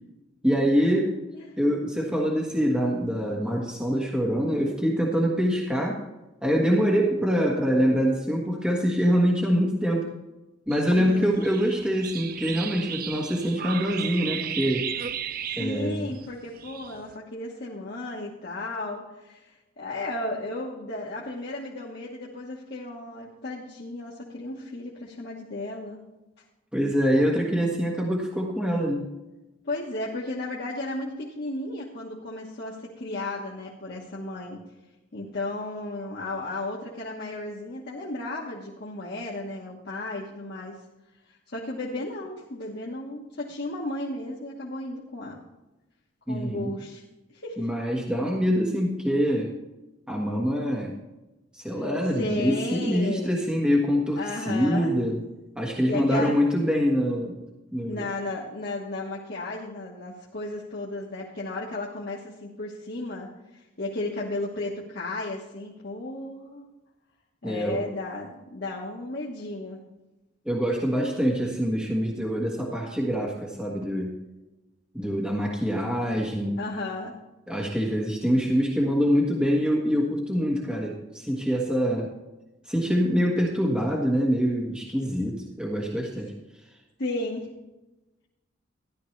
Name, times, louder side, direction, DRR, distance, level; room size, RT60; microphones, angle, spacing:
voice 1, 0.4-1.1 1.6-6.0 6.4-10.1 10.7-14.9 15.6-16.1 26.7-29.0 46.3-46.7 47.6-49.5 50.1-50.9 51.5-55.2 55.6-57.4 57.7-58.0 67.4-67.8 70.4-74.1 74.9-76.6 77.5-82.1 82.7-86.3, equal, 5° right, -2 dB, 1.4 m, -25 dB
sound 1, 10.7-17.1, right 8 dB, 50° right, 0.5 m, -35 dB
voice 2, 10.9-11.3 15.6-26.0 29.6-34.6 35.1-40.8 41.5-45.5 46.3-47.0 47.3-47.7 51.7-51.8 52.1-53.4 54.2-54.9 55.8-56.4 57.9-66.7 67.4-69.8 76.6-77.2 87.0-87.5, left 2 dB, 60° left, -4 dB, 1.4 m, -34 dB
14.0 x 11.5 x 3.3 m, 1.0 s
head